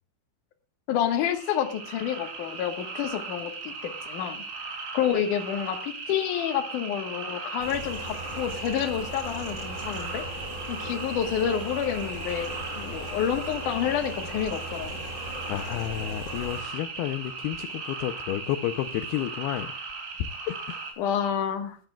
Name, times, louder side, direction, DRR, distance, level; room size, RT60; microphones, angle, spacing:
voice 1, 0.9-4.4 4.9-10.2 10.7-15.0 21.0-21.8, left 9 dB, 60° left, 2.3 m, -29 dB
sound 1, 1.1-20.9, right 4 dB, 85° right, 5.6 m, -38 dB
sound 2, 7.6-16.6, equal, 30° left, 3.1 m, -38 dB
voice 2, 15.5-19.7 20.2-20.8, left 13 dB, 85° left, 2.3 m, -31 dB
19.5 x 12.5 x 2.4 m
omnidirectional pair, 5.3 m